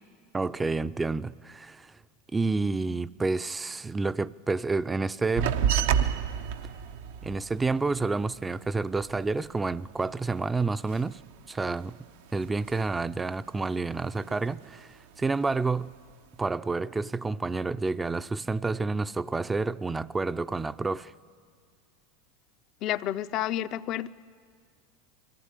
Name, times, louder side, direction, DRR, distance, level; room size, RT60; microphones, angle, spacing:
voice 1, 0.3-2.0 2.3-5.6 7.2-11.2 11.5-12.0 12.3-15.9 16.4-21.1, right 3 dB, 15° right, 0.5 m, -29 dB
sound 1, 5.4-10.3 10.6-12.0 12.3-13.1 13.4-14.8 15.2-15.9, right 8 dB, 75° right, 0.8 m, -31 dB
voice 2, 22.8-24.1, left 12 dB, 50° left, 0.6 m, -30 dB
22.0 x 15.5 x 9.8 m
hypercardioid pair, 95°, 0 cm